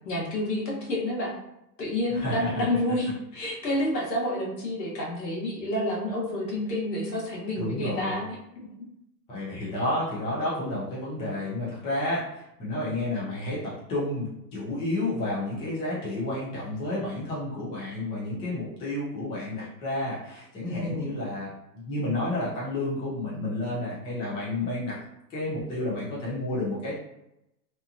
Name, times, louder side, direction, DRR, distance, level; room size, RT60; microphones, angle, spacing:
voice 1, 0.0-1.3 1.8-8.7 20.7-21.1, left 1 dB, 75° left, -4 dB, 1.3 m, -29 dB
voice 2, 2.1-2.6 7.5-8.2 9.3-12.3 12.6-25.0 25.3-26.9, left 1 dB, 10° left, -7 dB, 0.4 m, -31 dB
2.8 x 2.2 x 2.6 m, 0.83 s
hypercardioid pair, 115°, 50 cm